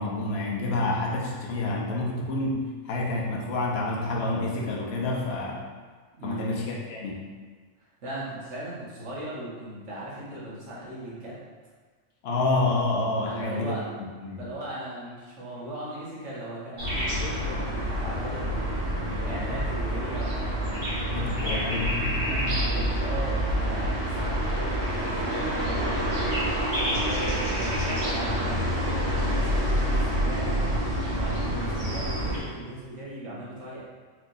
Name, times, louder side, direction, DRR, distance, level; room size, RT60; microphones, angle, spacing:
voice 1, 0.0-5.6 6.2-7.3 12.2-13.7 14.2-14.5 21.1-22.7, left 2 dB, 60° left, -2 dB, 0.9 m, -28 dB
voice 2, 6.1-6.5 8.0-11.4 13.2-13.9 14.4-21.8 22.4-30.6 31.1-33.8, right 1 dB, 65° right, -7 dB, 1.4 m, -38 dB
Nightingale Wind and Cars, 16.8-32.4, equal, 85° right, 1.9 m, -27 dB
4.6 x 3.2 x 2.6 m, 1.5 s
omnidirectional pair, 1.3 m